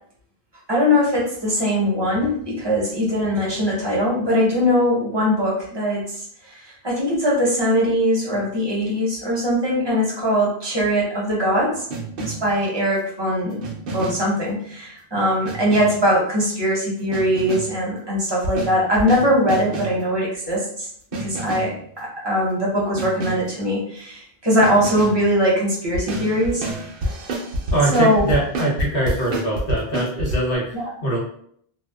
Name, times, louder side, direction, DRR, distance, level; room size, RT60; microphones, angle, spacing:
voice 1, 0.7-11.9 12.2-20.9 21.2-26.6 27.9-28.3 30.7-30.8, equal, 30° right, -5 dB, 0.7 m, -21 dB
sound 1, 11.9-12.6 13.6-14.4 15.4-16.1 17.1-17.8 18.4-20.0 21.1-21.8 23.0-23.5 24.6-25.2 25.9-30.4, right 1 dB, 65° right, 0.7 m, -28 dB
voice 2, 27.7-31.2, right 1 dB, 65° left, -5 dB, 1.1 m, -23 dB
2.7 x 2.0 x 2.2 m, 0.65 s
omnidirectional pair, 1.0 m